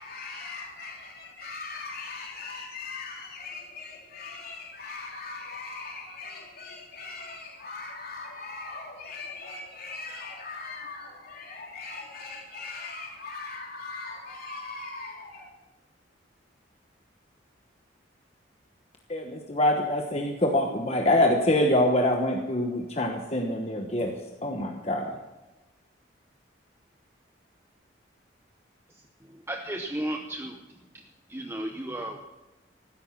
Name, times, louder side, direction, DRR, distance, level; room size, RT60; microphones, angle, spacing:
voice 1, 0.0-15.5, left 3 dB, 50° left, -2 dB, 3.6 m, -40 dB
voice 2, 19.1-24.2 24.4-25.2, left 1 dB, 35° left, 2 dB, 1.1 m, -25 dB
voice 3, 28.9-30.6 31.3-32.2, right 1 dB, 15° right, 3 dB, 0.8 m, -34 dB
15.5 x 13.0 x 5.9 m, 1.1 s
head